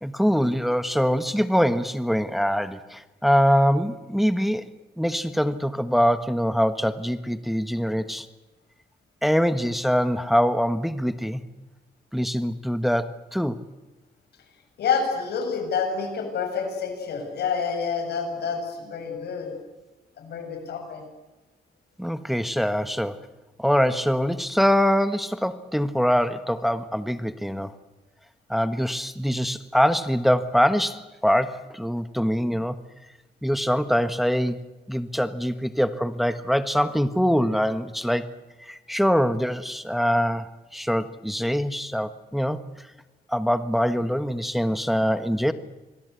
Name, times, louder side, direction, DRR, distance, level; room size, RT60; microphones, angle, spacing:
voice 1, 0.0-4.7 5.0-8.3 9.2-11.4 12.1-13.6 22.0-23.2 23.6-27.7 28.5-32.8 33.4-34.6 34.9-38.3 38.6-42.9 43.3-45.5, equal, ahead, 10 dB, 1.4 m, -23 dB
voice 2, 14.8-19.5 20.2-21.0, left 6 dB, 85° left, 4 dB, 7.3 m, -28 dB
27.0 x 22.0 x 8.2 m, 1.1 s
cardioid pair, 80°, 17 cm